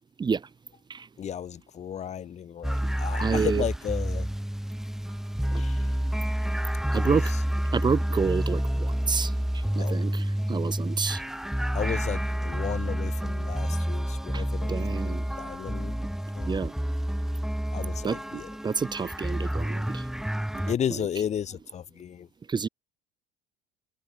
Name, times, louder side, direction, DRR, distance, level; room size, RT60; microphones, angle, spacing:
voice 1, 1.2-4.3 5.5-5.9 7.0-7.2 9.8-10.0 11.7-16.0 16.3-16.5 17.7-18.5 20.7-22.3, left 9 dB, 40° left, 3.1 m, -34 dB
sound 1, 2.6-20.8, equal, ahead, 2.9 m, -29 dB
voice 2, 3.2-3.6 5.5-5.6 6.0-6.1 6.9-7.3 7.7-11.2 14.3-15.2 16.5-16.7 18.0-20.0 20.9-21.1 22.5-22.7, right 5 dB, 25° right, 2.1 m, -29 dB
supercardioid pair, 105°, 18 cm